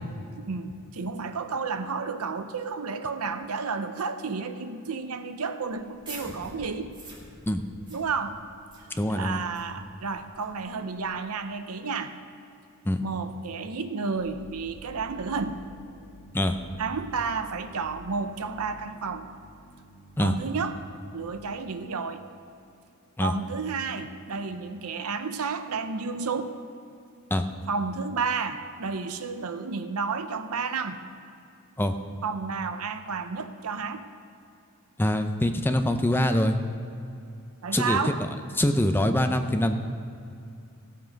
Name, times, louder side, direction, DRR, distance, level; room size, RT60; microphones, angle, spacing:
voice 1, 0.4-6.9 7.9-8.4 9.1-12.1 13.0-15.6 16.8-19.3 20.2-20.8 21.1-22.2 23.2-26.5 27.7-31.0 32.2-34.0 37.6-38.2, right 5 dB, 75° right, 9 dB, 0.7 m, -31 dB
sound 1, 5.8-11.1, right 1 dB, 20° right, 2.3 m, -47 dB
voice 2, 9.0-9.4 12.8-13.0 16.3-16.6 20.2-20.3 23.2-23.3 27.3-27.5 31.8-31.9 35.0-36.6 37.7-38.1 38.6-39.7, left 1 dB, 10° left, 7 dB, 0.5 m, -24 dB
sound 2, 14.2-21.9, right 2 dB, 35° right, 2.7 m, -50 dB
16.5 x 7.6 x 5.2 m, 2.6 s
head